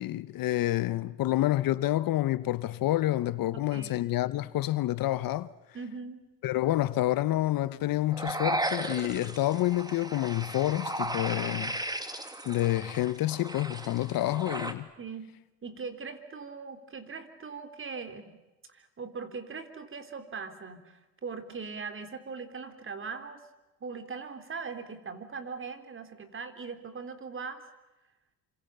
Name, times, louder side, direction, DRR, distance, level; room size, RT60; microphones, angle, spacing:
voice 1, 0.0-5.5 6.4-11.8 12.5-14.9, left 15 dB, 55° left, 1.1 m, -28 dB
voice 2, 3.5-4.0 5.7-6.2 15.0-15.3 15.6-18.3 18.7-23.4 23.8-27.6, right 5 dB, 30° right, 3.7 m, -40 dB
sound 1, 8.1-14.7, right 1 dB, 10° right, 2.5 m, -35 dB
28.5 x 26.5 x 6.8 m
supercardioid pair, 100°, 41 cm